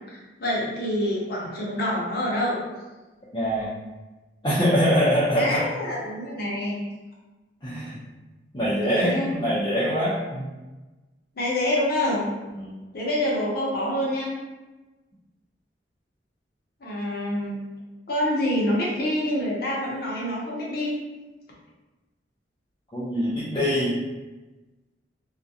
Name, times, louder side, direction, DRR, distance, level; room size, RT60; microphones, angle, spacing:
voice 1, 0.1-2.6 5.4-6.8 8.8-9.3 11.4-12.3 12.9-14.3 16.8-17.6 18.1-21.0, left 1 dB, 60° left, -4 dB, 0.7 m, -26 dB
voice 2, 3.3-3.7 4.4-5.6 7.6-8.0 8.5-10.5 12.5-12.8 22.9-24.0, equal, 25° left, -10 dB, 0.5 m, -24 dB
2.4 x 2.1 x 2.6 m, 1.2 s
head